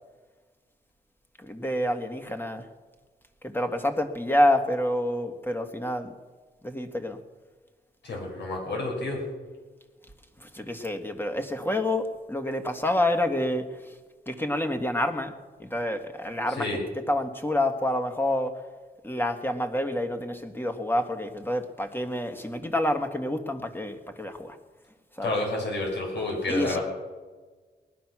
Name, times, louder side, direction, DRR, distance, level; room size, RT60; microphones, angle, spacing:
voice 1, 1.4-2.7 3.4-6.1 6.6-7.2 10.4-13.8 14.3-16.8 17.1-18.6 19.0-24.6 25.2-25.4 26.5-26.8, left 1 dB, 10° left, 6 dB, 1.8 m, -28 dB
voice 2, 8.0-9.2 16.6-16.8 25.2-26.8, left 2 dB, 85° left, 0 dB, 5.9 m, -29 dB
19.5 x 11.5 x 6.2 m, 1.4 s
cardioid pair, 70°, 18 cm